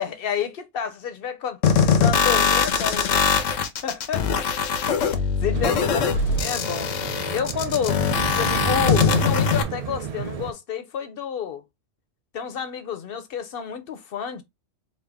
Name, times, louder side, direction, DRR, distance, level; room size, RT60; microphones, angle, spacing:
voice 1, 0.0-3.3 3.8-4.5 5.4-6.0 6.4-6.9 7.3-8.0 8.4-11.6 12.3-14.4, left 8 dB, 55° left, 0.7 m, -29 dB
sound 1, 1.6-9.6, left 6 dB, 85° left, 1.0 m, -22 dB
sound 2, 5.5-10.5, right 8 dB, 65° right, 0.3 m, -31 dB
4.1 x 2.4 x 3.3 m
omnidirectional pair, 1.3 m